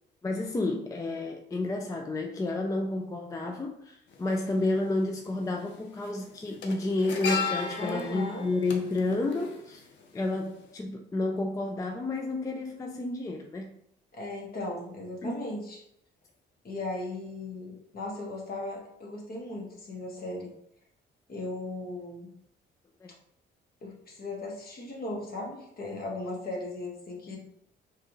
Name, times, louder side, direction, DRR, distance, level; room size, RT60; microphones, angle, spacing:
voice 1, 0.2-9.9 10.1-13.7 15.2-15.5 23.0-23.1, left 2 dB, 15° left, 2 dB, 0.4 m, -31 dB
sound 1, 4.1-4.2 5.4-5.7 6.0-10.2 10.5-10.7, left 5 dB, 70° left, 0.7 m, -35 dB
voice 2, 7.7-8.5 14.1-15.8 16.6-20.5 21.3-22.3 23.8-27.4, left 2 dB, 50° left, -2 dB, 1.4 m, -37 dB
4.7 x 2.5 x 3.0 m, 0.74 s
cardioid pair, 90°, 20 cm